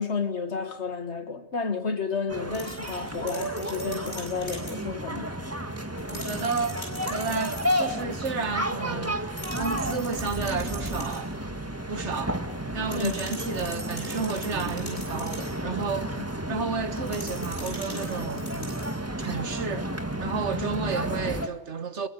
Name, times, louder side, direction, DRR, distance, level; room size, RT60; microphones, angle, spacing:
voice 1, 0.0-5.3 12.9-13.2, left 5 dB, 70° left, 2.1 m, -31 dB
sound 1, 2.3-21.5, right 1 dB, 10° right, 1.7 m, -32 dB
sound 2, 2.5-4.8 6.0-7.9 9.4-11.3 12.9-15.6 17.1-19.0, equal, 40° left, 7.3 m, -42 dB
voice 2, 6.1-9.3 9.6-11.3 11.9-12.4 12.7-16.2 16.5-18.6 19.2-19.9 20.2-22.1, right 5 dB, 75° right, 1.8 m, -32 dB
26.5 x 22.0 x 8.3 m
omnidirectional pair, 1.2 m